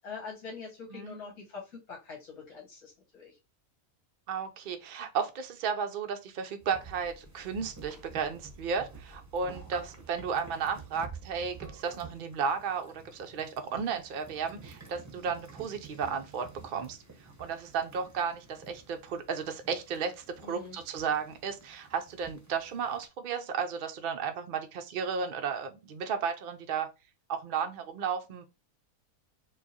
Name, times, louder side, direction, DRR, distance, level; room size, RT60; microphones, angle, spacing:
voice 1, 0.0-3.4 20.4-20.8, left 4 dB, 75° left, 1.6 m, -44 dB
voice 2, 4.3-17.0 17.2-26.9 27.3-28.4, right 6 dB, 75° right, 0.4 m, -34 dB
sound 1, 6.6-23.1, right 4 dB, 20° right, 0.5 m, -50 dB
4.8 x 2.3 x 2.7 m
omnidirectional pair, 1.5 m